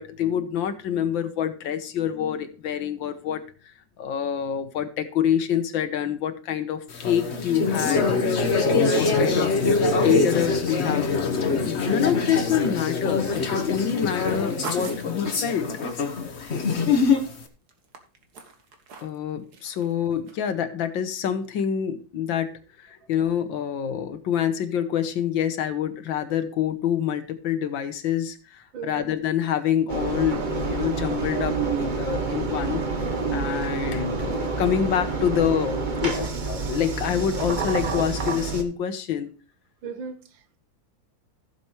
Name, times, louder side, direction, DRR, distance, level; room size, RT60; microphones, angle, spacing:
voice 1, 0.0-3.4 4.0-8.1 8.6-11.1 11.7-15.7 19.0-31.6 32.0-32.9 33.3-39.3, left 9 dB, 80° left, 1.8 m, -26 dB
sound 1, 6.9-17.4, left 4 dB, 40° left, 1.3 m, -24 dB
sound 2, 14.0-17.4 17.7-19.2 19.5-19.9 20.3-20.4, right 4 dB, 55° right, 1.9 m, -41 dB
voice 2, 28.7-29.1 39.8-40.6, right 5 dB, 80° right, 1.8 m, -37 dB
Engine, 29.9-38.6, right 4 dB, 35° right, 0.9 m, -28 dB
15.5 x 6.9 x 3.1 m
omnidirectional pair, 2.1 m